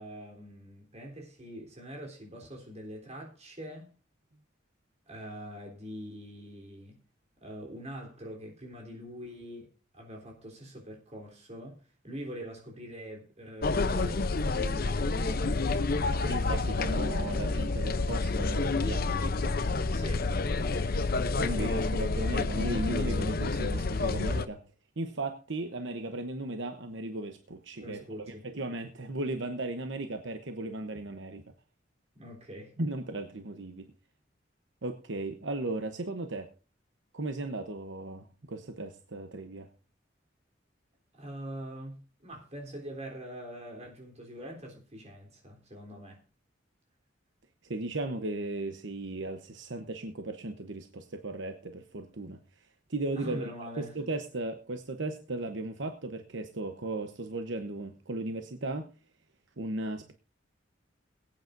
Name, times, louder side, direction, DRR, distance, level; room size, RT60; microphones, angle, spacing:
voice 1, 0.0-3.9 5.1-7.0 7.4-11.8 12.0-15.8 19.9-20.3 21.5-21.7 27.8-28.5 32.2-32.7 41.2-46.2 53.2-53.9, equal, 35° right, 3.6 m, -44 dB
sound 1, 13.6-24.5, left 3 dB, 50° left, 0.7 m, -29 dB
voice 2, 16.2-19.9 21.4-24.6 25.0-28.0 28.4-31.4 32.8-33.9 34.8-36.5 37.1-39.7 47.7-52.4 52.9-53.5 53.8-58.9 59.6-60.1, right 2 dB, 70° right, 1.0 m, -36 dB
22.0 x 8.8 x 2.6 m
head